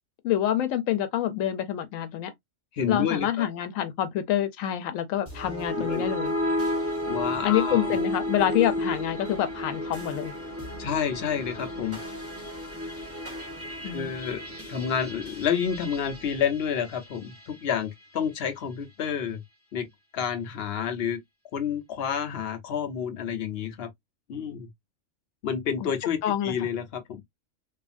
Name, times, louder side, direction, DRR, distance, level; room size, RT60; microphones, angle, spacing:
voice 1, 0.2-2.3 2.9-6.3 7.4-10.3 13.8-14.1 25.8-25.9 26.2-26.6, left 11 dB, 90° left, 1.0 m, -27 dB
voice 2, 2.7-3.5 5.8-6.1 7.0-7.9 10.8-12.0 13.9-14.4 14.7-19.4 19.7-19.9 20.1-21.2 21.5-23.9 24.3-24.7 25.4-27.2, left 7 dB, 60° left, 0.8 m, -29 dB
sound 1, 5.3-17.6, left 1 dB, 10° right, 0.9 m, -33 dB
2.7 x 2.4 x 2.4 m
omnidirectional pair, 1.3 m